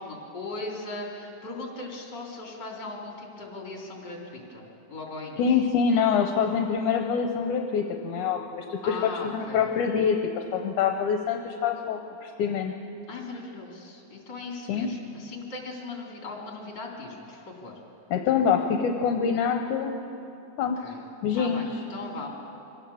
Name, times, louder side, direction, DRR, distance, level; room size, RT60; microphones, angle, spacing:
voice 1, 0.0-5.4 8.8-9.7 13.1-17.8 20.8-21.0 21.3-22.3, left 3 dB, 30° left, -1 dB, 3.7 m, -38 dB
voice 2, 5.4-12.7 14.7-14.9 18.1-19.9 20.6-20.8 21.2-21.7, left 6 dB, 75° left, 4 dB, 2.2 m, -25 dB
24.5 x 16.5 x 7.2 m, 2.9 s
omnidirectional pair, 3.8 m